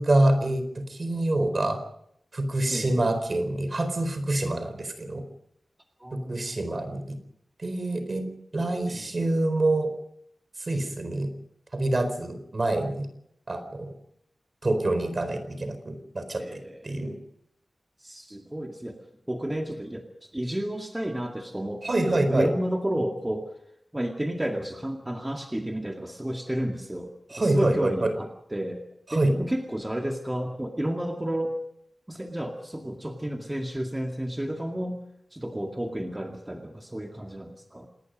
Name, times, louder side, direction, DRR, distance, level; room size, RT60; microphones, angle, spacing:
voice 1, 0.0-1.8 2.3-5.2 6.1-7.2 7.6-8.3 8.5-9.9 10.6-11.3 11.7-13.1 13.5-13.9 14.6-17.2 21.8-22.5 27.3-28.1 29.1-29.3, right 2 dB, 45° right, 9 dB, 4.3 m, -26 dB
voice 2, 2.7-3.1 6.0-6.8 8.9-9.3 16.4-17.0 18.0-19.0 19.3-23.4 23.9-27.1 27.4-28.8 29.1-31.5 32.1-35.0 35.3-37.9, right 1 dB, 15° right, 2 dB, 2.1 m, -32 dB
27.5 x 20.0 x 5.3 m, 0.74 s
wide cardioid pair, 105°, 0 cm